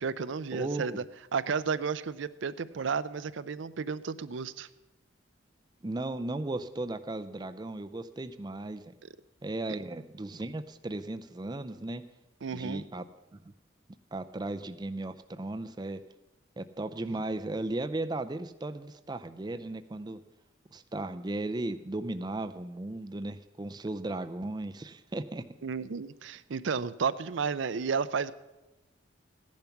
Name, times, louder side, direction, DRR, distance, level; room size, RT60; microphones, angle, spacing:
voice 1, 0.0-1.0 1.3-4.7 9.0-9.1 12.4-12.8 25.6-28.3, right 5 dB, 75° right, 14 dB, 0.5 m, -32 dB
voice 2, 0.5-1.0 5.8-8.9 9.4-12.0 12.5-13.0 13.3-13.5 14.1-16.0 16.6-20.2 20.7-25.4, right 2 dB, 20° right, 9 dB, 0.4 m, -36 dB
15.5 x 10.5 x 5.8 m, 1.0 s
head